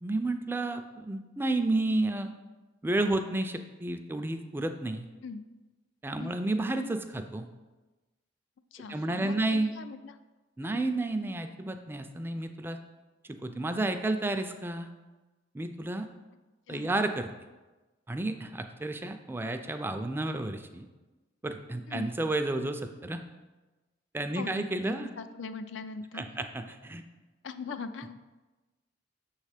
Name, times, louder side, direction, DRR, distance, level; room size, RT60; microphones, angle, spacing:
voice 1, 0.0-2.3 2.8-5.1 6.0-7.5 8.9-9.7 10.6-12.8 13.2-14.9 15.5-16.1 16.7-17.3 18.1-20.9 21.4-23.2 24.1-25.1 26.1-27.0, right 2 dB, 10° right, 7 dB, 0.3 m, -31 dB
voice 2, 8.7-10.2 10.6-10.8 16.7-16.9 21.9-22.1 24.3-26.3 27.4-28.2, left 4 dB, 80° left, 10 dB, 0.4 m, -41 dB
6.7 x 3.2 x 4.9 m, 1.2 s
head